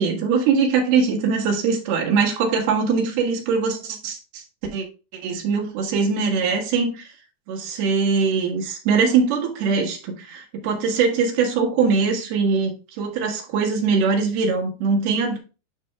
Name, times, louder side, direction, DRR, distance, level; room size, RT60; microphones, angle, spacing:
voice 1, 0.0-4.4 4.7-4.9 5.2-7.1 7.5-15.4, right 5 dB, 70° right, 3.3 m, -22 dB
12.5 x 5.3 x 2.3 m
omnidirectional pair, 4.8 m